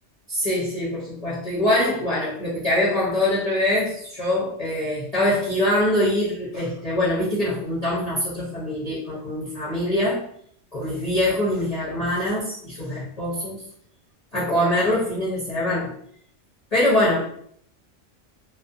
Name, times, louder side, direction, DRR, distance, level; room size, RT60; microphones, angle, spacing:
voice 1, 0.3-10.2 10.7-13.6 14.3-15.9 16.7-17.2, left 1 dB, 40° left, -9 dB, 0.7 m, -23 dB
2.4 x 2.0 x 2.5 m, 0.64 s
omnidirectional pair, 1.3 m